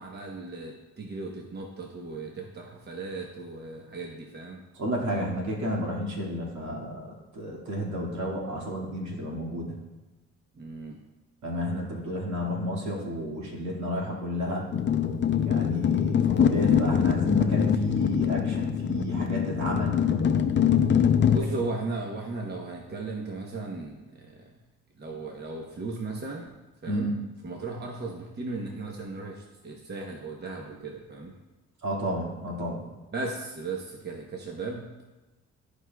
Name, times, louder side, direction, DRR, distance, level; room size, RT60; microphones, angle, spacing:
voice 1, 0.0-4.6 10.5-11.0 20.6-24.5 25.0-26.5 26.8-27.1 27.4-31.3 33.1-34.9, right 3 dB, 35° right, 0 dB, 1.0 m, -36 dB
voice 2, 4.8-7.1 7.3-9.7 11.4-14.6 15.5-20.0 26.9-27.1 31.8-32.8, equal, 70° right, -2 dB, 2.1 m, -31 dB
sound 1, 14.7-21.4, left 8 dB, 40° left, 0.6 m, -23 dB
13.0 x 4.8 x 2.3 m, 1.1 s
cardioid pair, 90°, 30 cm